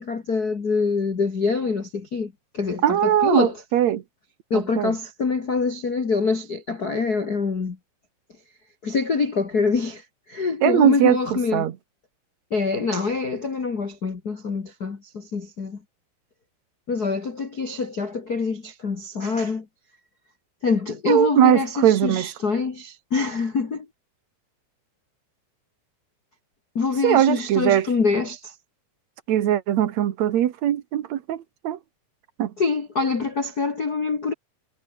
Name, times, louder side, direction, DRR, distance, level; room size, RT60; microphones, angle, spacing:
voice 1, 0.0-3.5 4.5-7.8 8.8-10.0 10.3-11.7 12.5-15.8 16.9-19.6 20.6-23.8 26.7-28.5 32.6-34.3, left 4 dB, 65° left, 0.9 m, -25 dB
voice 2, 2.8-4.0 4.5-4.9 10.6-11.7 21.1-22.3 27.0-27.9 29.3-31.8 32.4-32.5, right 11 dB, 80° right, 1.5 m, -20 dB
omnidirectional pair, 5.3 m